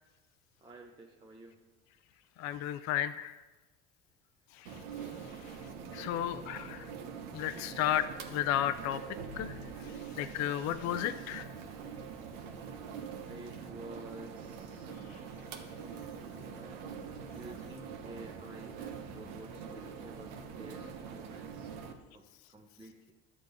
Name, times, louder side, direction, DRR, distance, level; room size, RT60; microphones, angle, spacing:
voice 1, 0.6-1.6 6.0-6.9 7.5-7.7 13.3-14.9 16.0-16.9 17.3-21.7 22.1-23.1, right 2 dB, 15° right, 0 dB, 0.8 m, -51 dB
voice 2, 2.4-3.4 4.6-4.8 5.4-5.5 5.9-6.9 7.3-9.0 9.3-11.5, left 11 dB, 60° left, 11 dB, 0.5 m, -34 dB
sound 1, 4.7-21.9, right 6 dB, 85° right, 1.1 m, -44 dB
11.5 x 7.5 x 4.0 m, 1.1 s
supercardioid pair, 100°, 30 cm